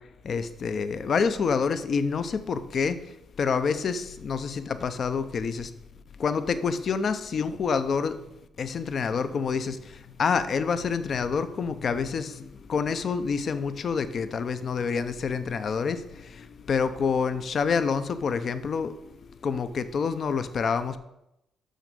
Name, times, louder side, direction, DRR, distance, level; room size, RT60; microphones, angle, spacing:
voice 1, 0.2-3.0 3.4-5.7 6.2-8.2 8.6-18.9 19.2-21.0, left 5 dB, 50° left, 12 dB, 0.7 m, -27 dB
6.4 x 6.3 x 6.8 m, 0.86 s
cardioid pair, 90°, 0 cm